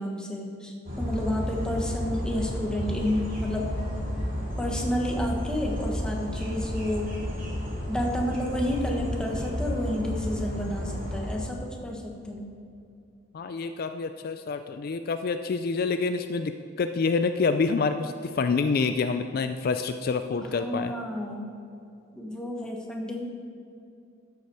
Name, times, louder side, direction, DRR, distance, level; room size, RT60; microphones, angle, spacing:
voice 1, 0.0-3.7 4.6-7.1 7.9-12.5 20.4-21.5 22.1-23.3, left 1 dB, 5° left, -1 dB, 1.3 m, -30 dB
sound 1, 0.9-11.3, equal, 45° right, 2.7 m, -32 dB
voice 2, 13.3-16.5 16.8-20.9, left 4 dB, 50° left, 9 dB, 0.4 m, -27 dB
12.5 x 7.1 x 4.7 m, 2.5 s
head